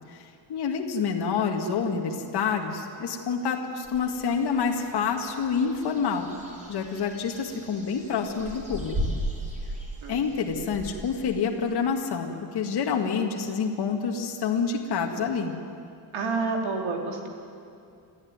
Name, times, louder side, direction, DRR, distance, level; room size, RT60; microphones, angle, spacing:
voice 1, 0.1-6.3 6.7-9.2 10.1-15.6, left 6 dB, 55° left, 2 dB, 2.0 m, -28 dB
sound 1, 3.8-11.9, equal, 15° right, 4.1 m, -37 dB
voice 2, 16.1-17.3, right 4 dB, 80° right, 2 dB, 3.6 m, -28 dB
28.0 x 13.0 x 9.5 m, 2.5 s
cardioid pair, 150°, 48 cm